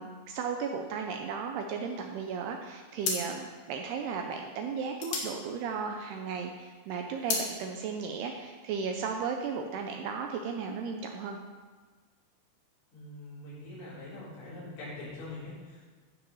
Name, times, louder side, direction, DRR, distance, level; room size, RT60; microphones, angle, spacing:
voice 1, 0.0-11.4, right 5 dB, 80° right, 3 dB, 2.4 m, -35 dB
sound 1, 2.3-2.6 3.0-6.4 6.7-7.5, left 4 dB, 60° left, 2.2 m, -35 dB
voice 2, 12.9-15.8, left 2 dB, 90° left, -11 dB, 6.3 m, -43 dB
14.5 x 5.8 x 5.5 m, 1.4 s
omnidirectional pair, 5.3 m